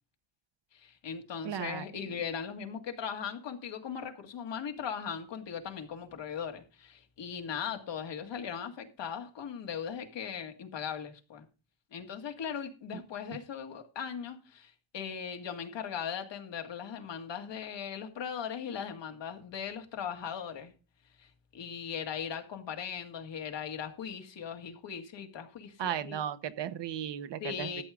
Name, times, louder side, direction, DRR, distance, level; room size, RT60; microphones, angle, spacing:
voice 1, 0.7-11.5 11.9-20.7 21.2-26.2 27.4-27.8, left 7 dB, 65° left, 2.0 m, -39 dB
voice 2, 1.4-1.8 12.9-13.0 25.8-27.8, right 9 dB, 65° right, 1.0 m, -35 dB
13.0 x 8.1 x 3.7 m
wide cardioid pair, 170°, 46 cm